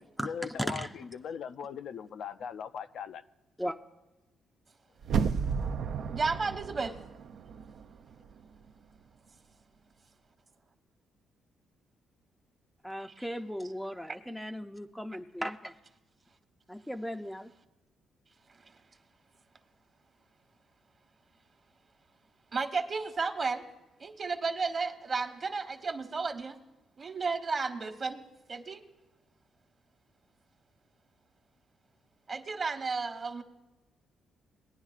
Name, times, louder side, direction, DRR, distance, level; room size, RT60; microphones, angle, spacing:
voice 1, 0.0-3.2, left 7 dB, 70° left, 10 dB, 0.4 m, -40 dB
voice 2, 0.6-0.9 3.6-3.8 12.8-15.7 16.7-17.5, equal, ahead, 6 dB, 0.4 m, -36 dB
sound 1, 5.0-8.0 8.3-8.4, right 6 dB, 70° right, 0.4 m, -32 dB
voice 3, 6.1-7.0 22.5-23.6 24.0-26.6 27.0-28.2 28.5-28.8 32.3-33.4, right 4 dB, 40° right, 7 dB, 1.1 m, -33 dB
20.0 x 9.9 x 2.4 m, 1.1 s
cardioid pair, 90°, 0 cm